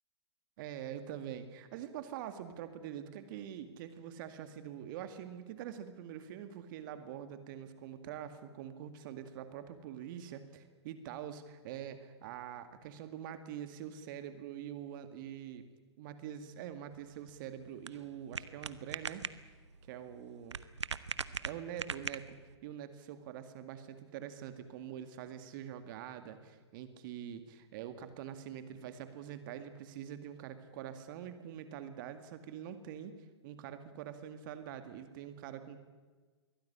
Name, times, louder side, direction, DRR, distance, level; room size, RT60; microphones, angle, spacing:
voice 1, 0.6-15.6 16.0-19.2 19.9-20.6 21.4-33.1 33.4-35.8, right 10 dB, 50° right, 10 dB, 2.1 m, -45 dB
sound 1, 16.9-22.6, right 5 dB, 85° right, 1.1 m, -42 dB
23.0 x 16.5 x 9.9 m, 1.4 s
hypercardioid pair, 115°, 14 cm